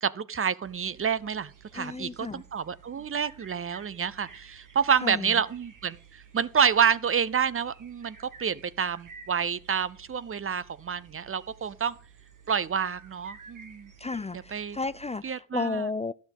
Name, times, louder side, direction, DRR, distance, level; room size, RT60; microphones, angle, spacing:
voice 1, 0.0-11.9 12.5-13.9 14.3-14.8 15.2-15.9, right 7 dB, 45° right, 0.6 m, -28 dB
sound 1, 0.6-15.2, right 6 dB, 85° right, 1.7 m, -53 dB
voice 2, 1.7-2.4 5.0-5.4 14.0-16.1, left 3 dB, 20° left, 0.4 m, -33 dB
12.0 x 6.2 x 5.3 m
cardioid pair, 65°, 31 cm